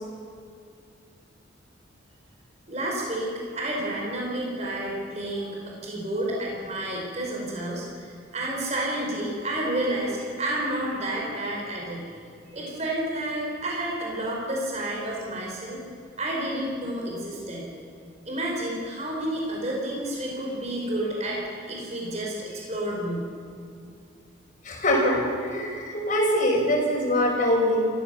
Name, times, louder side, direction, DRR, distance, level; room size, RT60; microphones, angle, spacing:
voice 1, 2.7-12.1 12.5-15.8 16.2-17.6 18.2-23.3, right 1 dB, 35° right, -2 dB, 5.0 m, -30 dB
voice 2, 24.6-27.8, left 1 dB, 40° left, 0 dB, 5.2 m, -23 dB
28.5 x 15.0 x 7.0 m, 2.4 s
head